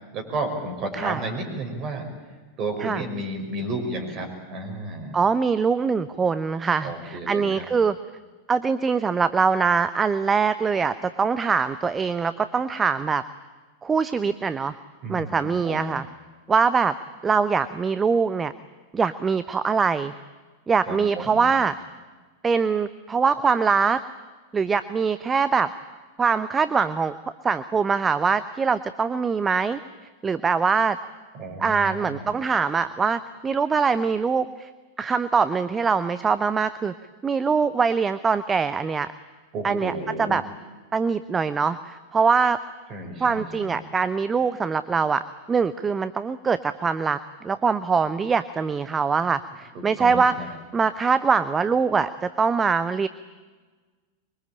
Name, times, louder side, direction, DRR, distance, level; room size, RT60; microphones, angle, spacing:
voice 1, 0.1-2.0 2.6-5.2 6.8-7.7 15.0-15.9 20.9-21.5 31.3-32.3 39.5-40.4 42.9-43.7 49.7-50.5, right 2 dB, 35° right, 3 dB, 6.1 m, -32 dB
voice 2, 5.1-8.0 8.5-13.2 13.8-14.7 15.1-16.0 16.5-16.9 17.2-18.5 18.9-20.1 20.7-21.8 22.4-24.0 24.5-25.7 26.2-27.2 27.4-29.8 30.2-31.0 31.6-34.7 35.0-36.9 37.2-39.1 39.6-39.9 40.2-40.4 40.9-42.6 43.2-45.2 45.5-47.2 47.4-50.4 50.7-53.1, right 5 dB, 15° right, 14 dB, 0.8 m, -23 dB
24.5 x 23.0 x 8.8 m, 1.3 s
figure-of-eight pair, 90°, 0 cm